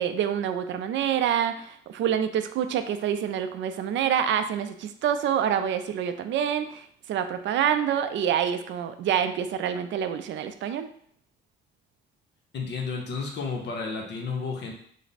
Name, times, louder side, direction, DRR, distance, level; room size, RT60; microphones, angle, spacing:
voice 1, 0.0-10.9, right 9 dB, 70° right, 9 dB, 0.4 m, -27 dB
voice 2, 12.5-14.7, left 4 dB, 60° left, 1 dB, 0.8 m, -32 dB
3.3 x 2.1 x 4.0 m, 0.63 s
cardioid pair, 90°, 20 cm